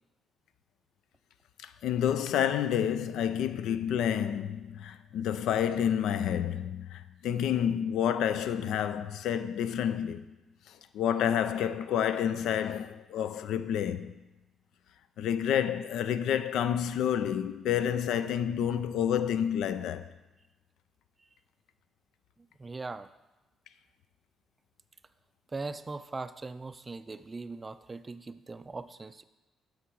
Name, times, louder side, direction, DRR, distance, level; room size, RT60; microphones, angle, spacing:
voice 1, 1.6-10.4 10.9-14.1 15.2-20.1, left 9 dB, 80° left, 0.4 m, -29 dB
voice 2, 22.6-23.1 25.5-29.2, right 3 dB, 25° right, 0.4 m, -40 dB
6.7 x 6.5 x 4.6 m
cardioid pair, 90°, 0 cm